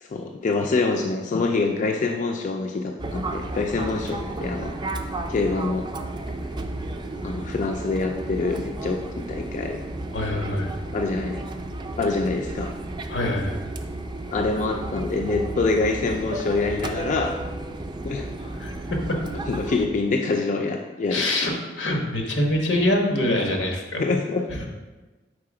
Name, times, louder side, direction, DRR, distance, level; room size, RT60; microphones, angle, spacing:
voice 1, 0.0-4.7 5.3-5.9 7.2-9.8 10.9-11.4 12.0-12.7 14.3-17.3 18.0-18.3 19.5-21.3 24.0-24.4, left 3 dB, 45° left, 3 dB, 0.4 m, -25 dB
Fixed-wing aircraft airplane, 3.0-19.9, right 2 dB, 25° right, 0.4 m, -33 dB
voice 2, 10.1-10.7 13.1-13.6 18.4-18.7 21.1-24.0 24.5-24.7, left 1 dB, 85° left, 1 dB, 1.1 m, -24 dB
4.8 x 4.1 x 4.9 m, 1.2 s
head